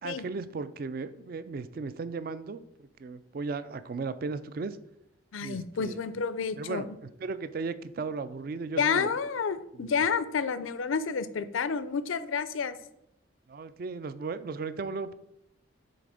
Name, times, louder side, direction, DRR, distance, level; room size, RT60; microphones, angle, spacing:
voice 1, 0.0-2.6 3.0-4.8 5.4-6.0 6.6-9.1 9.7-9.9 13.5-15.1, right 4 dB, 45° right, 14 dB, 0.3 m, -36 dB
voice 2, 5.3-6.9 8.8-12.8, left 6 dB, 85° left, 14 dB, 0.5 m, -30 dB
7.9 x 3.4 x 4.9 m, 0.81 s
head